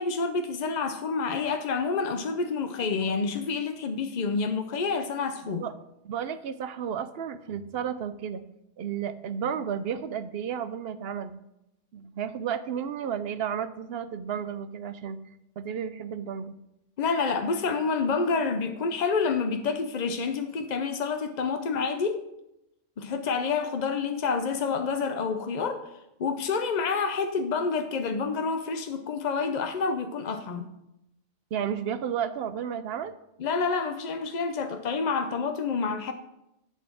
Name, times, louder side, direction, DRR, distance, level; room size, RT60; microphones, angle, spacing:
voice 1, 0.0-5.6 17.0-22.2 23.0-25.9 26.2-30.7 33.4-36.1, left 4 dB, 50° left, 7 dB, 0.5 m, -28 dB
voice 2, 6.0-8.4 8.8-11.4 11.9-15.2 15.6-16.6 31.5-33.1, right 8 dB, 60° right, 12 dB, 0.7 m, -32 dB
10.5 x 4.2 x 7.4 m, 0.87 s
omnidirectional pair, 1.4 m